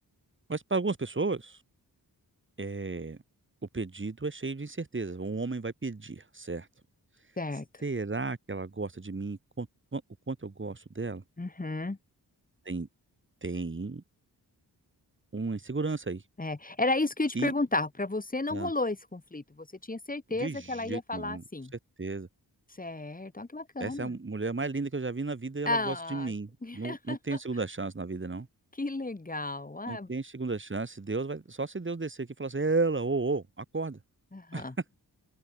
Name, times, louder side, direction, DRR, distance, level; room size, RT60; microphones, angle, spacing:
voice 1, 0.5-1.6 2.6-3.2 3.7-6.7 7.8-9.7 9.9-10.0 10.3-11.2 12.6-12.9 13.4-14.0 15.3-16.2 17.3-17.5 18.5-18.7 20.4-21.4 22.0-22.3 23.8-28.5 29.9-34.0 34.5-34.7, right 3 dB, 30° right, 6.5 m, -33 dB
voice 2, 11.4-12.0 16.4-21.7 22.8-24.1 25.7-26.3 26.6-27.4 28.8-30.1 34.3-34.7, left 2 dB, 20° left, 5.6 m, -33 dB
wide cardioid pair, 135°, 39 cm